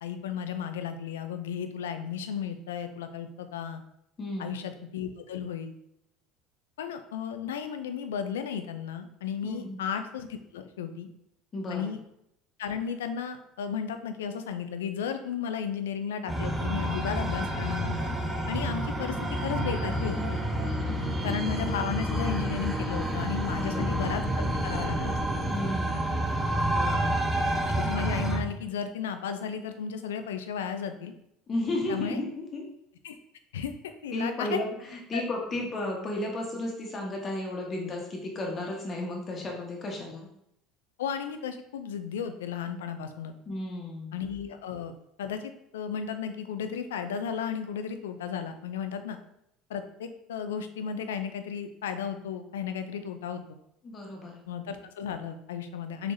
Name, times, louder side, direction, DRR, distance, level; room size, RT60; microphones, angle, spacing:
voice 1, 0.0-3.8 4.4-5.7 6.8-11.1 11.7-12.0 12.6-18.0 18.5-19.2 19.4-20.4 21.2-25.2 27.7-31.1 31.9-32.2 33.0-33.2 33.5-34.6 35.1-35.2 41.0-43.3 44.1-49.2 49.7-53.6 54.5-56.1, left 7 dB, 90° left, 8 dB, 0.3 m, -34 dB
voice 2, 4.2-4.5 9.4-9.8 11.5-11.8 20.8-21.1 23.5-24.0 25.5-26.1 26.7-27.2 31.5-32.6 34.1-40.3 43.5-44.1 53.8-54.3, left 1 dB, 35° left, 0 dB, 1.1 m, -34 dB
sound 1, 16.3-28.4, right 1 dB, 5° right, 0.7 m, -29 dB
3.8 x 3.3 x 2.6 m, 0.79 s
hypercardioid pair, 85°, 0 cm